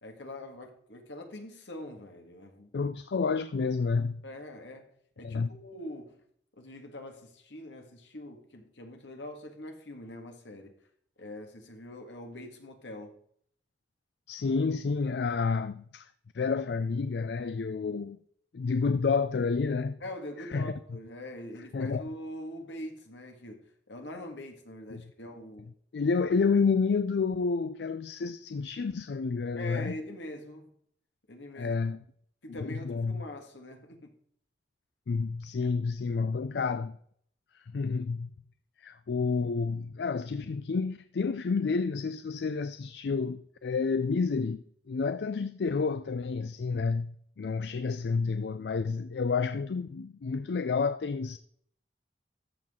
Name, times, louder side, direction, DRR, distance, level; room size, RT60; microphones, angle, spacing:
voice 1, 0.0-2.7 4.2-6.2 6.5-10.7 11.2-13.2 20.0-25.7 29.6-30.7 31.3-31.8 32.4-34.1, left 1 dB, 80° left, 1.8 m, -43 dB
voice 2, 2.7-4.2 5.2-5.5 14.3-16.1 16.3-18.2 18.5-20.0 20.5-20.7 21.7-22.0 24.9-25.0 25.9-29.9 31.6-32.0 32.5-33.2 35.1-37.0 37.7-38.3 38.8-51.4, left 4 dB, 65° left, 0.4 m, -29 dB
13.5 x 6.1 x 3.7 m
head